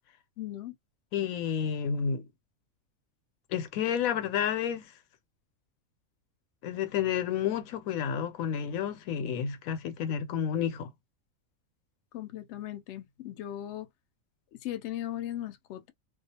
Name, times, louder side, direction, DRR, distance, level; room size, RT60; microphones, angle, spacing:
voice 1, 0.4-0.7 12.1-13.9 14.6-15.9, left 12 dB, 70° left, 0.8 m, -38 dB
voice 2, 1.1-2.2 3.5-4.9 6.6-10.9, left 8 dB, 90° left, 1.0 m, -30 dB
2.3 x 2.3 x 2.7 m
omnidirectional pair, 1.4 m